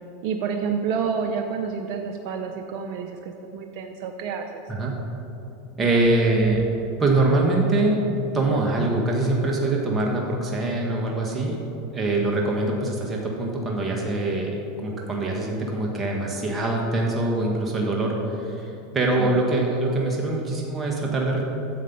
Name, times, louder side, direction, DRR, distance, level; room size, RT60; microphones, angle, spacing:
voice 1, 0.2-4.6 19.2-19.3, right 6 dB, 60° right, 4 dB, 0.6 m, -29 dB
voice 2, 5.8-6.6 7.0-8.0 8.3-11.6 11.9-21.4, right 2 dB, 20° right, -1 dB, 1.6 m, -23 dB
9.5 x 7.4 x 5.5 m, 2.9 s
hypercardioid pair, 100°, 0 cm